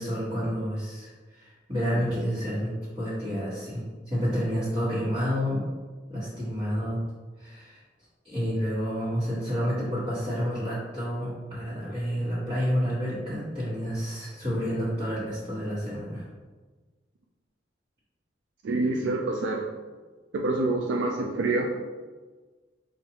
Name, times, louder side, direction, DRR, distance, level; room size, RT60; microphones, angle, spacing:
voice 1, 0.0-5.7 6.1-7.0 7.4-7.8 8.2-16.2, equal, 30° right, -14 dB, 1.5 m, -29 dB
voice 2, 18.6-19.7 20.3-21.7, right 2 dB, 80° right, 1 dB, 0.4 m, -26 dB
5.5 x 2.6 x 2.9 m, 1.4 s
head